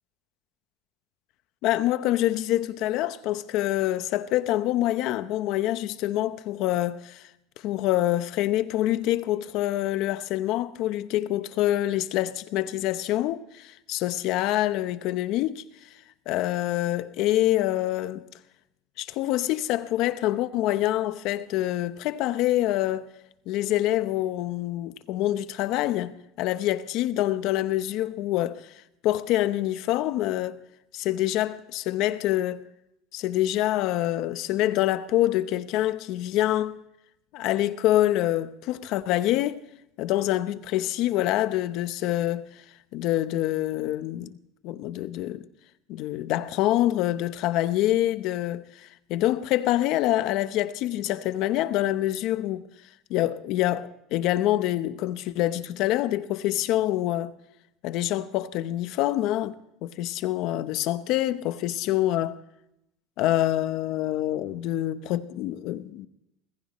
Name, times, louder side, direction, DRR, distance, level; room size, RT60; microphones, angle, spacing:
voice 1, 1.6-7.3 7.6-15.9 16.3-18.3 19.0-23.1 23.5-30.6 30.9-32.6 33.1-36.8 37.3-39.6 40.0-42.5 42.9-44.4 44.6-45.5 45.9-52.7 53.1-57.3 57.8-62.4 63.2-66.1, left 14 dB, 55° left, 0.8 m, -26 dB
21.0 x 15.0 x 3.1 m
cardioid pair, 150°, 0 cm